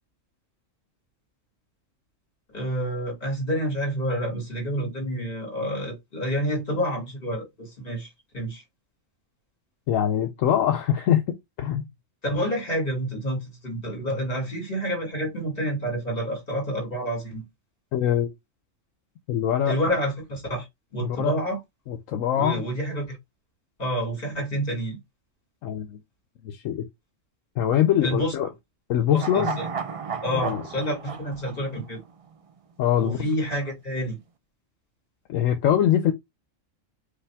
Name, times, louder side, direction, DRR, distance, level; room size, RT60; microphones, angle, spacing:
voice 1, 2.5-8.6 12.2-17.4 19.7-20.7 20.9-21.6 22.3-23.2 23.8-25.0 28.0-28.3 29.1-29.7 30.2-32.0 33.0-34.2, equal, 45° left, 2.6 m, -28 dB
voice 2, 9.9-11.9 17.9-18.3 19.3-19.8 21.0-21.3 21.9-22.6 25.6-26.0 26.4-26.8 27.6-28.5 28.9-29.6 30.4-30.6 32.8-33.2 35.3-36.1, left 10 dB, 80° left, 1.0 m, -23 dB
sound 1, 29.1-32.5 32.8-32.9, right 6 dB, 50° right, 0.4 m, -34 dB
5.1 x 2.5 x 3.4 m
omnidirectional pair, 1.4 m